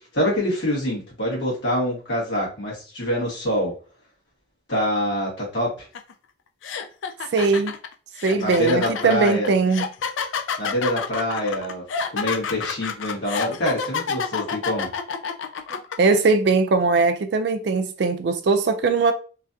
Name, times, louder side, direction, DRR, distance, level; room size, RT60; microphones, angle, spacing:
voice 1, 0.1-3.7 4.7-5.9 8.4-9.5 10.6-11.8 12.1-14.9, equal, 65° left, 1.6 m, -25 dB
sound 1, 5.9-6.1 6.6-15.9, left 6 dB, 85° left, 0.4 m, -28 dB
voice 2, 7.3-7.7 8.2-9.9 15.7-19.1, right 4 dB, 60° right, 0.4 m, -20 dB
3.2 x 2.4 x 2.6 m
head